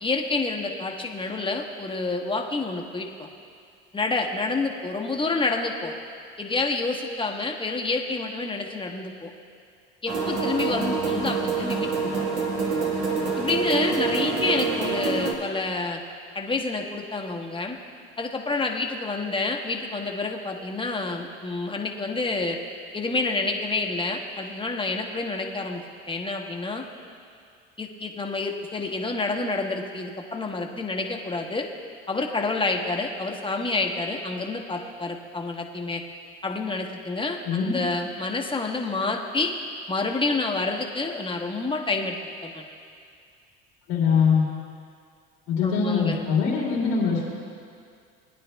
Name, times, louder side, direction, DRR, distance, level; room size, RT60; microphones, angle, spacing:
voice 1, 0.0-3.3 3.9-5.9 6.4-9.3 10.0-12.2 13.4-16.0 16.3-17.8 18.2-22.6 22.9-25.8 26.1-26.8 27.8-31.7 32.1-36.0 36.4-39.5 39.9-42.2 42.4-42.6 45.6-46.2, left 3 dB, 15° left, 2 dB, 1.1 m, -28 dB
sound 1, 10.1-15.3, right 4 dB, 90° right, 1.4 m, -26 dB
voice 2, 37.4-37.8 43.9-44.5 45.5-47.2, left 6 dB, 90° left, -5 dB, 2.5 m, -22 dB
19.0 x 9.8 x 2.3 m, 2.2 s
hypercardioid pair, 75°, 33 cm